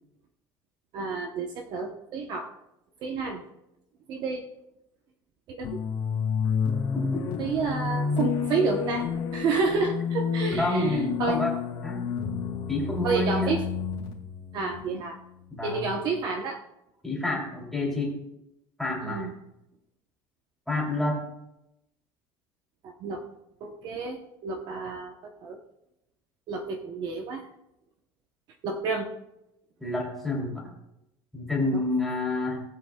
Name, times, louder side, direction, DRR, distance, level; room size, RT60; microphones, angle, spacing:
voice 1, 0.9-2.5 3.0-3.4 4.1-4.4 5.5-5.8 7.4-11.4 13.0-13.6 14.5-15.2 15.6-16.6 19.0-19.3 22.8-23.2 23.6-25.6 26.5-27.5 28.6-29.1 31.7-31.8, right 4 dB, 45° right, 3 dB, 0.9 m, -30 dB
sound 1, 5.6-15.5, left 6 dB, 50° left, 2.2 m, -30 dB
voice 2, 6.9-7.3 10.6-11.5 11.8-12.1 12.7-13.6 15.5-15.9 17.0-18.2 18.8-19.3 20.7-21.2 29.8-30.7 31.3-32.6, left 2 dB, ahead, -3 dB, 2.9 m, -28 dB
19.0 x 8.0 x 2.3 m, 0.87 s
cardioid pair, 170°, 10 cm